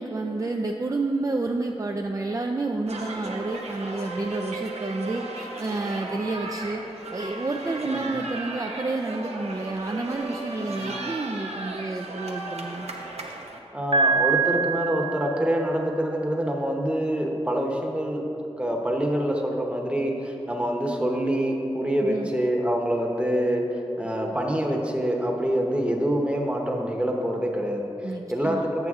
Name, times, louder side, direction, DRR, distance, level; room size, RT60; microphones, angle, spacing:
voice 1, 0.0-6.8 7.1-12.9 22.0-22.3 28.0-28.6, right 2 dB, 35° right, 2 dB, 0.4 m, -30 dB
sound 1, 2.9-13.6, right 2 dB, 90° right, 0.8 m, -36 dB
voice 2, 7.7-8.1 10.5-11.1 13.7-18.2 18.6-28.9, equal, 10° right, 0 dB, 0.9 m, -26 dB
Piano, 13.9-15.8, right 5 dB, 55° right, 0.8 m, -24 dB
7.8 x 6.9 x 3.6 m, 2.8 s
wide cardioid pair, 75°, 11 cm